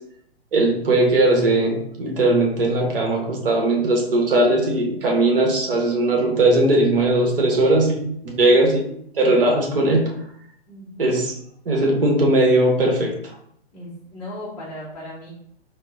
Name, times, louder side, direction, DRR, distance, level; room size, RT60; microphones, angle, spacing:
voice 1, 0.5-10.1 11.0-11.3 11.6-13.4, right 2 dB, 60° right, 1 dB, 1.3 m, -19 dB
voice 2, 10.7-11.2 13.7-15.3, left 1 dB, 10° left, -10 dB, 0.6 m, -37 dB
4.3 x 2.2 x 3.8 m, 0.69 s
figure-of-eight pair, 120°, 31 cm